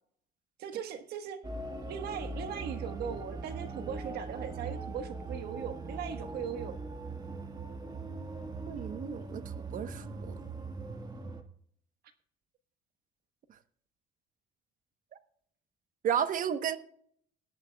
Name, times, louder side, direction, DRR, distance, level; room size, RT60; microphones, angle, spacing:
voice 1, 0.6-1.4 1.8-6.8, right 8 dB, 70° right, 1.4 m, -39 dB
sound 1, 1.4-11.4, right 3 dB, 25° right, 1.6 m, -40 dB
voice 2, 8.7-10.4 13.5-13.6 16.0-16.8, right 8 dB, 55° right, 1.0 m, -33 dB
19.0 x 11.5 x 2.3 m
cardioid pair, 110°, 17 cm